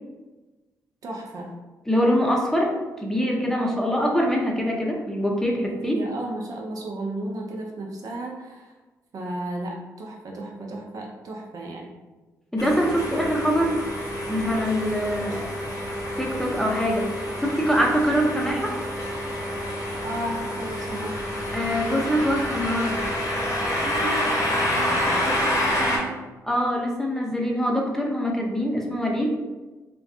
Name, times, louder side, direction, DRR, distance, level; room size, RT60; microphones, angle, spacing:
voice 1, 1.0-1.5 5.8-8.7 9.1-11.9 20.0-21.3 23.8-24.3 24.7-26.2, right 1 dB, 55° right, 0 dB, 0.5 m, -34 dB
voice 2, 1.9-6.0 12.5-13.8 14.3-15.5 16.2-18.7 21.5-23.0 26.4-29.3, equal, 5° left, -1 dB, 0.6 m, -24 dB
sound 1, 12.6-26.0, left 1 dB, 55° left, 0.8 m, -28 dB
2.5 x 2.2 x 2.4 m, 1.2 s
hypercardioid pair, 45°, 7 cm